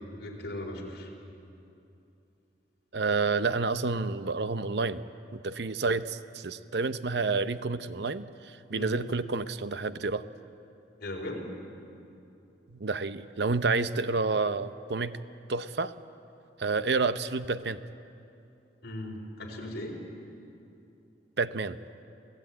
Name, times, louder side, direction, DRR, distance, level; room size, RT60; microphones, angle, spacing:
voice 1, 0.2-1.1 8.7-9.0 11.0-11.5 18.8-20.0, left 1 dB, 60° left, -1 dB, 4.2 m, -37 dB
voice 2, 2.9-5.0 5.3-10.3 12.7-15.2 15.5-15.9 16.6-17.8 21.4-21.8, right 4 dB, 65° right, 12 dB, 0.7 m, -29 dB
28.0 x 16.5 x 8.8 m, 2.7 s
head